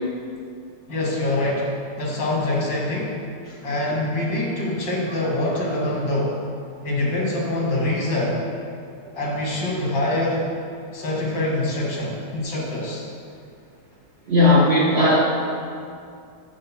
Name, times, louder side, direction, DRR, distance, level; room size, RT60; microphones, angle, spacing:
voice 1, 0.9-3.2 3.6-6.4 6.8-8.4 9.1-10.4 10.9-13.0, left 1 dB, 80° left, -3 dB, 2.1 m, -24 dB
voice 2, 14.3-15.2, left 1 dB, 65° right, -4 dB, 0.6 m, -16 dB
7.7 x 3.9 x 5.7 m, 2.4 s
omnidirectional pair, 1.9 m